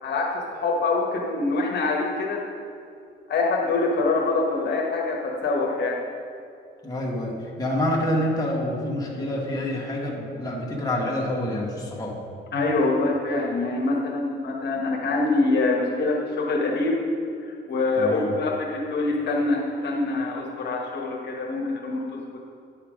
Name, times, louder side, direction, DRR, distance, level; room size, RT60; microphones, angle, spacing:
voice 1, 0.0-2.4 3.3-6.0 12.5-17.0 17.7-22.2, left 3 dB, 60° left, -2 dB, 1.3 m, -25 dB
voice 2, 6.8-12.2 18.0-18.3, left 1 dB, 20° left, -3 dB, 2.0 m, -27 dB
9.8 x 5.7 x 5.1 m, 2.5 s
cardioid pair, 90°, 20 cm